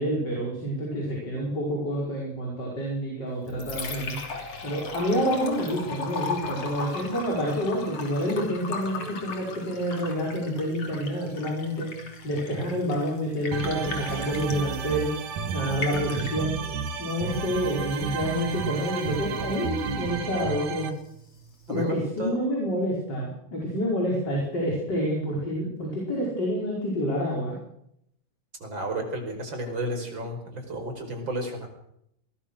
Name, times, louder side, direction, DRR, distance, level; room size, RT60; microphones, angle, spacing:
voice 1, 0.0-4.2 4.6-11.9 12.2-15.1 15.5-16.5 17.0-20.9 21.7-27.6, equal, 30° left, -3 dB, 5.8 m, -28 dB
Liquid, 3.3-22.3, left 3 dB, 50° left, 4.1 m, -39 dB
sound 1, 13.5-20.9, right 6 dB, 80° right, 3.2 m, -32 dB
voice 2, 28.6-31.7, right 1 dB, 35° right, 4 dB, 5.8 m, -32 dB
23.0 x 19.5 x 6.4 m, 0.75 s
omnidirectional pair, 3.6 m